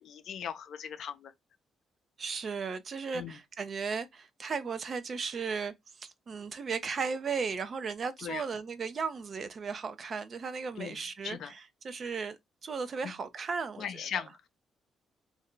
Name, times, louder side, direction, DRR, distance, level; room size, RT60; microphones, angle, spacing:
voice 1, 0.0-1.3 3.1-3.4 8.2-8.4 10.8-11.5 13.0-13.1 13.8-14.5, left 8 dB, 70° left, 0.5 m, -39 dB
voice 2, 2.2-13.9, right 5 dB, 45° right, 0.5 m, -36 dB
2.6 x 2.2 x 3.6 m
cardioid pair, 90°, 0 cm